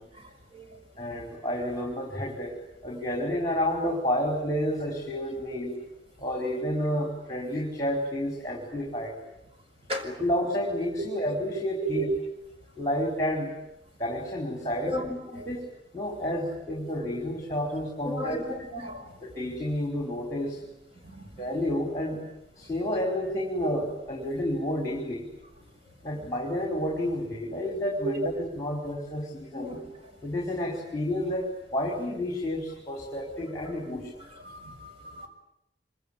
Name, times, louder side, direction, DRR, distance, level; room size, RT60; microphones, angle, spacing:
voice 1, 1.0-2.6 2.8-5.7 6.2-9.1 10.0-12.0 12.8-13.5 14.0-14.9 15.5-15.6 15.9-18.7 19.2-20.6 21.4-22.2 22.6-25.2 26.0-29.8 30.2-31.4 31.7-34.1, left 1 dB, 20° left, 0 dB, 4.7 m, -30 dB
voice 2, 11.8-12.2 14.9-15.5 18.0-19.1 21.0-21.5 28.0-28.3 29.5-29.9 33.9-34.0 34.3-35.3, right 1 dB, 30° right, 3 dB, 5.6 m, -34 dB
26.5 x 25.0 x 9.0 m, 0.83 s
head